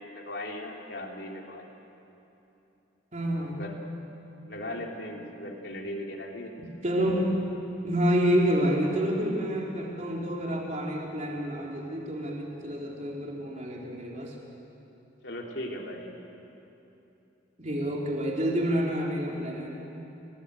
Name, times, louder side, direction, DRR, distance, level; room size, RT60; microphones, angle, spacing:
voice 1, 0.0-1.7 3.5-3.9 4.5-6.5 15.2-16.1, left 1 dB, 60° left, 0 dB, 3.4 m, -38 dB
voice 2, 3.1-3.6 6.6-7.3 7.8-14.3 17.6-19.7, equal, 35° right, -2 dB, 3.8 m, -28 dB
29.5 x 19.5 x 8.5 m, 3.0 s
head